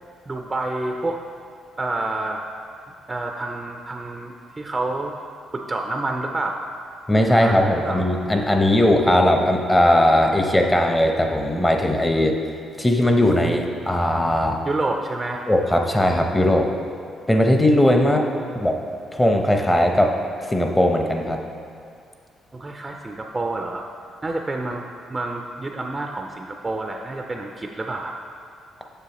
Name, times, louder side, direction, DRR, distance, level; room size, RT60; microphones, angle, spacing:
voice 1, 0.3-1.2 1.8-2.5 3.1-5.2 5.5-6.6 7.3-8.0 14.7-15.5 18.0-18.5 22.5-23.8 24.2-28.1, right 2 dB, 25° right, 3 dB, 0.4 m, -28 dB
voice 2, 7.1-12.3 12.8-14.6 15.5-16.7 17.3-18.3 18.5-18.8 19.1-20.1 20.5-21.4, left 1 dB, 15° left, 3 dB, 0.7 m, -18 dB
6.8 x 6.8 x 2.9 m, 2.3 s
cardioid pair, 90°, 0 cm